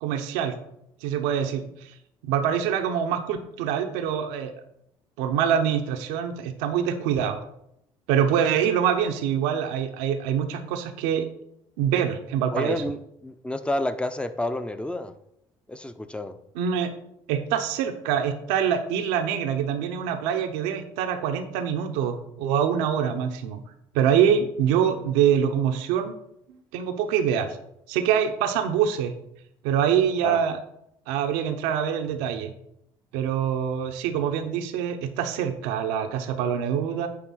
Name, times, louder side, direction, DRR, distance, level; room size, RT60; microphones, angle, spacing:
voice 1, 0.0-0.5 1.0-1.9 2.2-4.5 5.2-7.4 8.1-11.3 11.8-12.8 16.5-16.9 17.3-23.6 23.9-26.1 26.5-27.6 27.9-29.1 29.6-30.6 31.1-32.5 33.1-37.1, right 8 dB, 90° right, 6 dB, 0.9 m, -25 dB
voice 2, 12.5-13.0 13.2-15.1 15.7-16.3 30.2-30.4, left 1 dB, 10° left, 10 dB, 0.8 m, -29 dB
9.5 x 3.3 x 6.3 m, 0.77 s
supercardioid pair, 80°, 12 cm